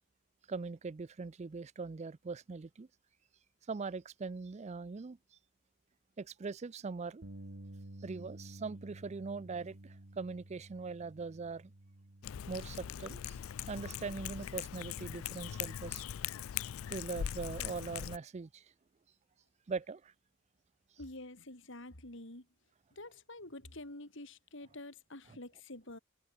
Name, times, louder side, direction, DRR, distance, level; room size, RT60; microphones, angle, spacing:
voice 1, 0.5-2.9 3.7-5.2 6.2-7.2 8.0-11.7 12.5-13.4 13.7-16.0 16.9-18.6 19.7-20.1, right 4 dB, 35° right, 0.4 m, -41 dB
Bass guitar, 7.2-13.5, right 1 dB, 65° right, 1.8 m, -52 dB
Cat, 12.2-18.2, left 10 dB, 85° left, 0.4 m, -41 dB
voice 2, 21.0-22.5 23.0-26.0, left 2 dB, 65° left, 4.3 m, -48 dB
head